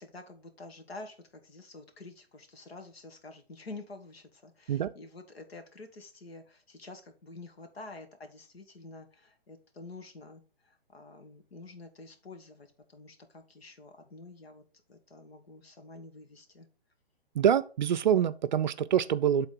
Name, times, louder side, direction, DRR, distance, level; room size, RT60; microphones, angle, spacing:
voice 1, 0.0-14.6 14.9-16.7, left 3 dB, 75° left, 1.9 m, -48 dB
voice 2, 17.3-19.5, right 9 dB, 50° right, 0.5 m, -25 dB
8.2 x 3.8 x 5.2 m
hypercardioid pair, 145°, 31 cm